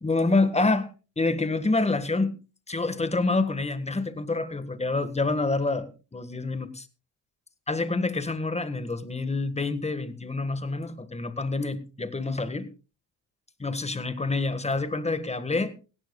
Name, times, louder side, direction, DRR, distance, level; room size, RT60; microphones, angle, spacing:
voice 1, 0.0-0.9 1.2-2.3 2.7-6.7 7.7-12.7 13.6-15.7, left 3 dB, 15° left, 12 dB, 1.6 m, -27 dB
18.0 x 16.5 x 2.4 m, 0.32 s
cardioid pair, 90°, 40 cm